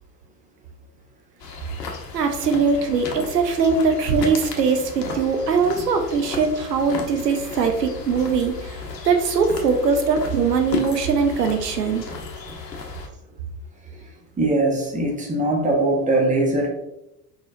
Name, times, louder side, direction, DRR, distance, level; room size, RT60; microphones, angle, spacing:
sound 1, 1.4-13.1, left 3 dB, 85° left, 0.9 m, -34 dB
voice 1, 2.1-8.7 9.0-12.0, right 5 dB, 85° right, 5 dB, 0.7 m, -21 dB
voice 2, 14.4-16.7, right 2 dB, 15° right, 0 dB, 1.1 m, -21 dB
4.7 x 4.2 x 2.5 m, 0.87 s
figure-of-eight pair, 75°, 48 cm